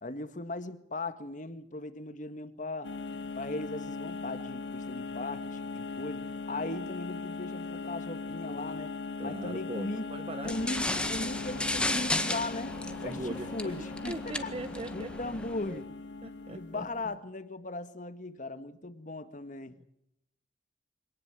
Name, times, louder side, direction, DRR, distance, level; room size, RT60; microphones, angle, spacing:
voice 1, 0.0-2.9 3.4-8.9 9.2-10.1 10.4-13.2 13.5-14.5 14.9-15.9 16.5-19.8, left 2 dB, 45° left, 1.8 m, -38 dB
sound 1, 2.8-17.0, left 4 dB, 85° left, 0.9 m, -39 dB
voice 2, 9.2-10.5 13.0-15.1 15.7-15.8 16.2-16.9 19.7-19.8, right 2 dB, 35° right, 1.0 m, -40 dB
sound 2, 10.4-15.7, left 1 dB, 5° left, 1.7 m, -34 dB
25.0 x 18.5 x 8.4 m
head